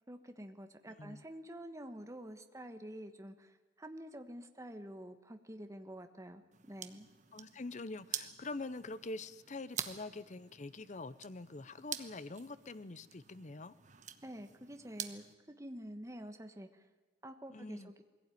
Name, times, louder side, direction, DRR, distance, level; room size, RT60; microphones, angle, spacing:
voice 1, 0.1-7.1 14.2-16.8 17.2-18.0, equal, 20° right, 7 dB, 1.3 m, -48 dB
voice 2, 0.8-1.2 7.3-13.7 17.5-17.9, left 3 dB, 45° left, 15 dB, 0.8 m, -45 dB
sound 1, 6.5-15.3, right 9 dB, 45° right, 1.2 m, -47 dB
21.5 x 16.5 x 9.3 m, 1.3 s
head